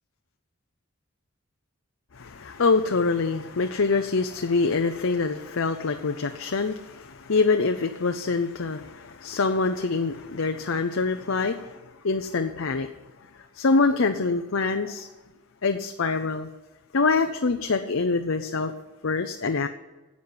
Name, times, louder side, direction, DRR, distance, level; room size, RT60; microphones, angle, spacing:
voice 1, 2.1-11.8 12.0-12.9 13.5-15.1 15.6-16.5 16.9-18.7 19.0-19.7, left 4 dB, 65° left, 6 dB, 0.7 m, -25 dB
10.5 x 8.4 x 9.8 m, 1.2 s
head